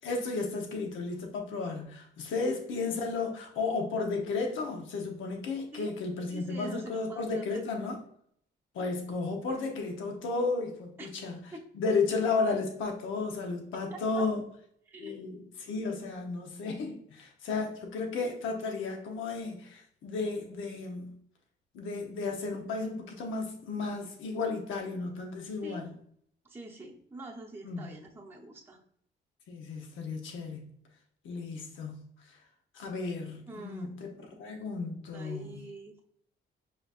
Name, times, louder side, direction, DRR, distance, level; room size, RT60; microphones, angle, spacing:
voice 1, 0.0-8.0 8.7-11.4 11.7-14.4 15.0-21.1 21.7-25.9 27.6-27.9 29.5-30.7 31.2-32.0 32.7-34.1 34.4-35.5, left 4 dB, 80° left, 2 dB, 0.9 m, -33 dB
voice 2, 6.3-7.6 11.0-11.1 11.5-11.6 13.9-14.3 14.9-15.2 25.6-25.8 26.4-28.8 33.5-34.4 35.1-36.0, right 1 dB, 10° right, -2 dB, 0.8 m, -45 dB
5.1 x 2.8 x 2.4 m, 0.66 s
cardioid pair, 90°, 20 cm